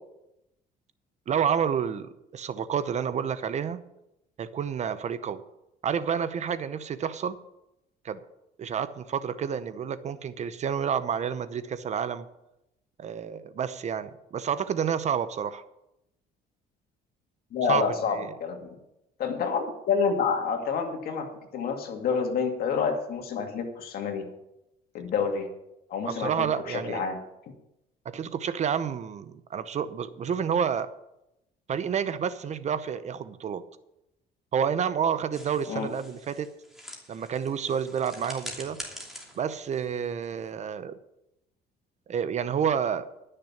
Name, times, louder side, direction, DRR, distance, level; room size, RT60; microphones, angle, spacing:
voice 1, 1.3-3.8 4.4-5.4 5.8-7.4 8.0-8.2 8.6-12.3 13.0-15.6 17.7-17.8 18.2-18.3 26.1-27.0 28.0-30.9 31.7-33.6 34.5-36.5 37.1-38.8 39.4-41.0 42.1-43.1, right 7 dB, 45° right, 13 dB, 0.7 m, -29 dB
voice 2, 17.5-18.7 19.2-21.3 21.5-24.2 24.9-25.5 25.9-27.2 35.7-35.9, left 5 dB, 65° left, 4 dB, 2.3 m, -28 dB
sound 1, 35.3-40.6, equal, ahead, 2.8 m, -44 dB
12.0 x 6.7 x 7.2 m, 0.87 s
cardioid pair, 110°, 17 cm